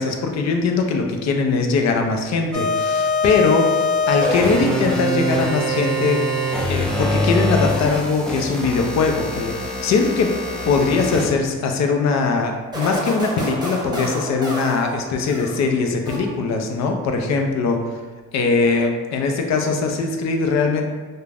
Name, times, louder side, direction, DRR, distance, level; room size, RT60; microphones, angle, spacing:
voice 1, 0.0-6.2 6.7-10.3 10.7-17.8 18.3-20.9, left 4 dB, 60° left, 3 dB, 0.5 m, -21 dB
sound 1, 2.5-11.4, left 1 dB, ahead, 0.4 m, -23 dB
sound 2, 12.7-15.7 16.1-16.7, right 1 dB, 15° right, 0.8 m, -30 dB
2.4 x 2.1 x 3.3 m, 1.3 s
cardioid pair, 90°, 30 cm